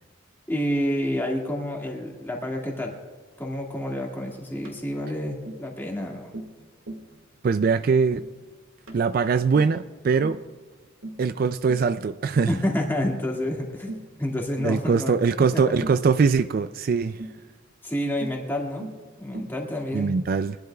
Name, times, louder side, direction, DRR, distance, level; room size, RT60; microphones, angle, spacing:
voice 1, 0.5-3.0 3.4-6.3 12.5-13.9 14.2-15.8 17.8-18.9 19.2-20.1, left 1 dB, 10° left, 2.0 m, -29 dB
Tap, 4.6-4.8 5.5-5.7 6.3-6.6 6.9-7.1 7.5-7.7 8.1-8.3 8.9-9.1 9.5-9.8 10.2-10.5 11.0-11.3 11.7-11.9 12.4-12.6 13.0-13.2 13.9-14.1 14.6-14.8 15.8-16.1 17.2-17.4 18.2-18.4 18.8-19.0 19.3-19.6, right 1 dB, 85° right, 1.9 m, -38 dB
voice 2, 7.4-8.2 8.9-10.4 11.2-12.5 14.6-17.2 19.9-20.6, right 5 dB, 45° right, 0.3 m, -22 dB
23.0 x 12.0 x 2.3 m
head